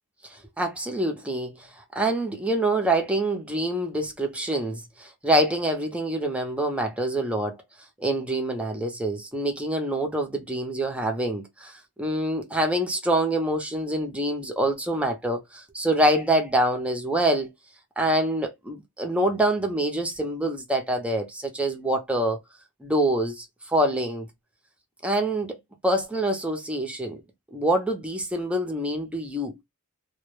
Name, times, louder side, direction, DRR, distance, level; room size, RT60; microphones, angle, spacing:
voice 1, 0.2-7.6 8.0-17.5 18.0-22.4 22.8-24.3 25.0-25.6 25.8-27.2 27.5-29.6, right 1 dB, 5° right, 0.5 m, -26 dB
2.2 x 2.1 x 3.0 m
head